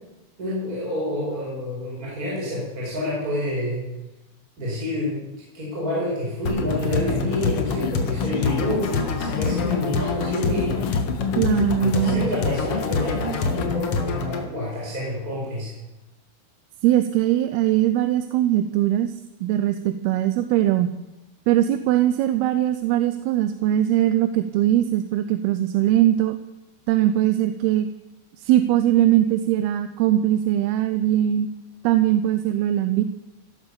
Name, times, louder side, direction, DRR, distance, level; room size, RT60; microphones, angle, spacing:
voice 1, 0.4-3.9 4.6-5.2 5.5-10.9 11.8-15.7, left 1 dB, 20° right, -5 dB, 5.4 m, -28 dB
sound 1, 6.4-14.4, left 4 dB, 45° left, 2.2 m, -26 dB
sound 2, 6.8-13.7, left 10 dB, 85° left, 3.1 m, -33 dB
voice 2, 11.4-12.3 16.8-20.9 21.5-26.4 26.9-27.9 28.4-31.5 31.8-33.0, right 12 dB, 85° right, 10 dB, 2.7 m, -21 dB
16.5 x 12.0 x 6.9 m, 0.98 s
omnidirectional pair, 4.4 m